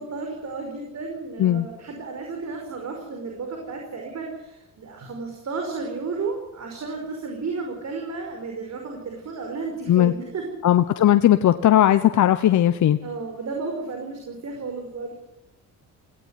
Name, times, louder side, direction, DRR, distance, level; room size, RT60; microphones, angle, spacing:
voice 1, 0.0-10.4 13.0-15.2, right 4 dB, 50° right, 2 dB, 5.3 m, -33 dB
voice 2, 10.6-13.0, left 12 dB, 60° left, 9 dB, 1.1 m, -17 dB
18.0 x 17.0 x 9.7 m, 0.97 s
cardioid pair, 90°, 33 cm